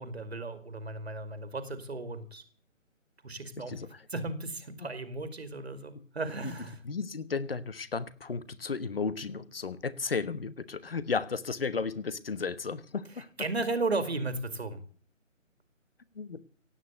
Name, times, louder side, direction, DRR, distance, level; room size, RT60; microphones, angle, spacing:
voice 1, 0.0-2.4 3.2-3.8 4.1-6.8 13.4-14.8, right 3 dB, 50° right, 2.3 m, -35 dB
voice 2, 3.7-4.0 5.9-6.0 6.4-6.6 6.8-13.5 16.1-16.4, left 5 dB, 45° left, 1.3 m, -34 dB
17.0 x 9.2 x 8.1 m
figure-of-eight pair, 150°, 39 cm